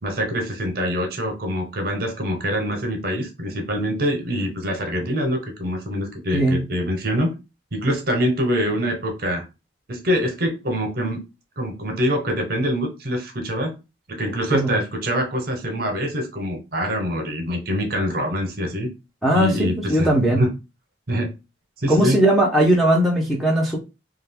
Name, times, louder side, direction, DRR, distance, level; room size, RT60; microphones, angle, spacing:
voice 1, 0.0-7.3 7.7-9.4 9.9-11.2 11.6-13.8 14.1-18.9 19.3-20.1 20.4-20.5 21.1-21.3 21.8-22.2, equal, 55° right, 3 dB, 0.9 m, -24 dB
voice 2, 19.2-20.4 21.9-23.8, right 1 dB, ahead, -4 dB, 0.7 m, -18 dB
2.5 x 2.4 x 3.4 m, 0.27 s
head